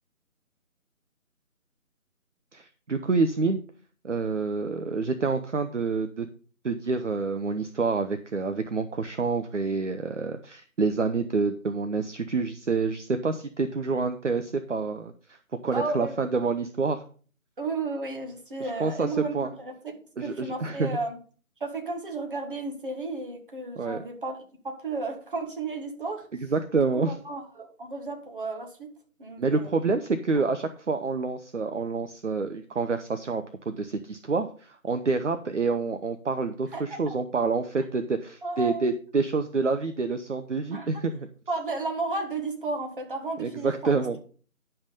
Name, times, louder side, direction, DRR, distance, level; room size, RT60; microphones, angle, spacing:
voice 1, 2.5-3.6 4.0-6.3 6.6-15.4 15.6-17.0 18.8-19.1 19.3-19.5 20.2-20.9 23.8-24.0 26.5-27.1 29.4-41.3 43.4-44.2, right 4 dB, 55° right, 8 dB, 0.8 m, -27 dB
voice 2, 15.7-16.2 17.6-21.2 21.6-24.4 24.6-26.3 26.7-28.9 29.2-29.7 36.7-37.1 38.4-38.9 40.7-41.0 41.5-44.0, right 3 dB, 35° right, 2 dB, 1.8 m, -33 dB
10.5 x 5.6 x 5.3 m, 0.41 s
figure-of-eight pair, 155°, 43 cm